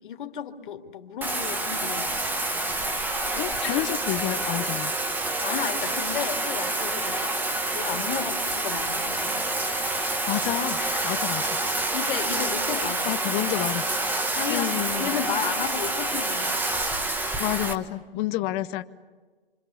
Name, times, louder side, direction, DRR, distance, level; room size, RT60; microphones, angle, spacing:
voice 1, 0.0-2.1 3.3-3.8 5.4-9.5 10.8-11.2 11.6-13.2 14.3-16.6 18.1-18.4, left 8 dB, 55° left, 5 dB, 2.7 m, -34 dB
Bathtub (filling or washing), 1.2-17.7, right 2 dB, 5° right, 1.3 m, -27 dB
voice 2, 3.3-4.9 10.3-11.6 12.8-13.9 14.5-15.3 17.4-18.8, left 15 dB, 20° left, 12 dB, 0.8 m, -29 dB
28.0 x 27.0 x 7.1 m, 1.4 s
hypercardioid pair, 150°, 30 cm